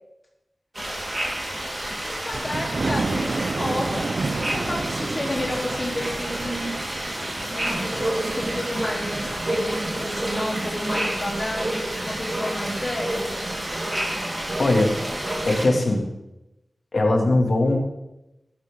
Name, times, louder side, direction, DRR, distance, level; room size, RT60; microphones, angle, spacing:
sound 1, 0.7-15.7, right 1 dB, 25° right, 4.3 m, -31 dB
voice 1, 2.1-6.9 7.4-13.3, left 1 dB, 35° left, -1 dB, 3.8 m, -31 dB
Thunder, 2.3-12.1 12.6-12.7 13.1-13.2 13.5-13.6, right 3 dB, 65° right, 0.6 m, -32 dB
sound 2, 7.6-15.9, right 1 dB, 45° right, 1.9 m, -32 dB
voice 2, 14.6-15.0 15.4-16.0 16.9-17.8, left 2 dB, 65° left, 1 dB, 2.8 m, -20 dB
15.5 x 12.0 x 4.0 m, 0.93 s
wide cardioid pair, 60°, 0 cm